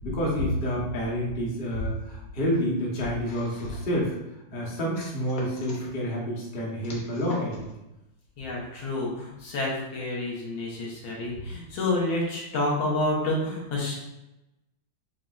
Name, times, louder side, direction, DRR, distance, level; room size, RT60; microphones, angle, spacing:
voice 1, 0.0-4.1 4.5-7.7, equal, 35° left, -4 dB, 0.9 m, -29 dB
sound 1, 3.2-4.0 4.9-5.9 6.8-7.7, left 2 dB, 55° left, 1.1 m, -44 dB
voice 2, 8.4-14.0, left 2 dB, 85° left, -3 dB, 1.8 m, -29 dB
7.0 x 2.5 x 2.4 m, 0.95 s
omnidirectional pair, 2.2 m